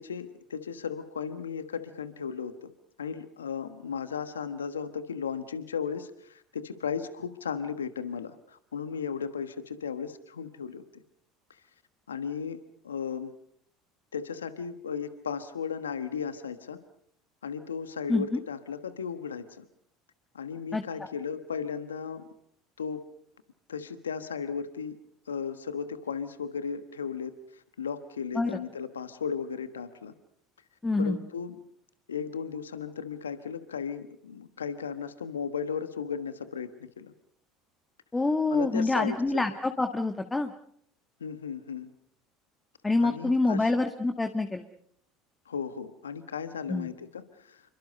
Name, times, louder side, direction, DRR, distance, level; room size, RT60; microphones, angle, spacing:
voice 1, 0.0-2.7 3.0-11.0 12.1-12.6 12.8-13.3 14.1-16.8 17.4-19.6 20.3-22.2 22.8-23.0 23.7-25.0 25.3-30.1 31.0-31.6 32.1-36.7 37.0-37.1 38.5-39.4 41.2-41.9 43.0-43.7 45.5-47.6, left 6 dB, 85° left, 11 dB, 1.3 m, -35 dB
voice 2, 30.8-31.2 38.1-40.5 42.8-44.6 46.7-46.9, left 2 dB, 15° left, 7 dB, 1.7 m, -26 dB
27.5 x 23.5 x 5.5 m, 0.68 s
hypercardioid pair, 70°, 0 cm